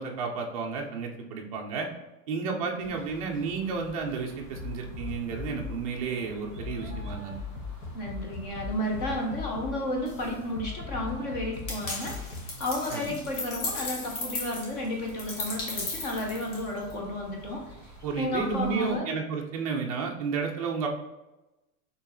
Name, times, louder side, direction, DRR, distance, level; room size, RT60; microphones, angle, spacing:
voice 1, 0.0-1.9 2.3-7.4 12.9-13.2 18.0-20.9, right 5 dB, 30° right, 0 dB, 0.4 m, -32 dB
voice 2, 2.6-2.9 7.9-19.1, left 1 dB, 30° left, 1 dB, 0.5 m, -33 dB
sound 1, 2.8-19.0, right 1 dB, ahead, 1.4 m, -49 dB
sound 2, 4.6-5.9 6.6-12.5, left 4 dB, 80° left, 1.1 m, -39 dB
sound 3, 11.7-16.9, left 3 dB, 50° left, 1.3 m, -36 dB
4.5 x 3.1 x 2.9 m, 0.99 s
supercardioid pair, 155°, 44 cm